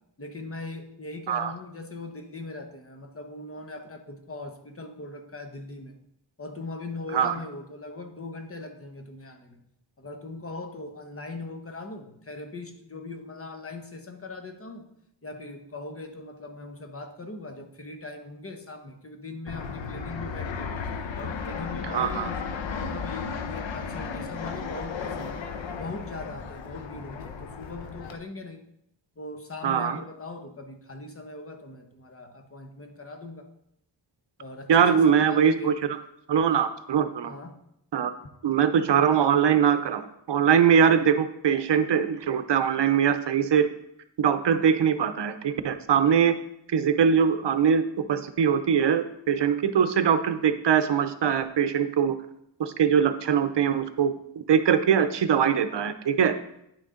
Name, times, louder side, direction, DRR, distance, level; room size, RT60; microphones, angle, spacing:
voice 1, 0.2-6.0 6.4-9.6 10.0-14.9 15.2-20.8 21.2-22.4 22.8-25.4 25.8-28.6 29.2-33.5 34.4-35.8 37.2-37.6, left 2 dB, 30° left, 5 dB, 1.0 m, -40 dB
Fixed-wing aircraft airplane, 19.5-28.2, left 5 dB, 90° left, 0.8 m, -34 dB
voice 2, 21.9-22.3 29.6-30.0 34.7-35.7 36.3-37.3 37.9-38.1 38.4-40.0 40.3-43.7 44.2-46.4 46.7-52.2 52.6-54.1 54.5-56.3, right 7 dB, 70° right, 10 dB, 0.7 m, -22 dB
9.6 x 6.5 x 3.7 m, 0.78 s
wide cardioid pair, 120°, 44 cm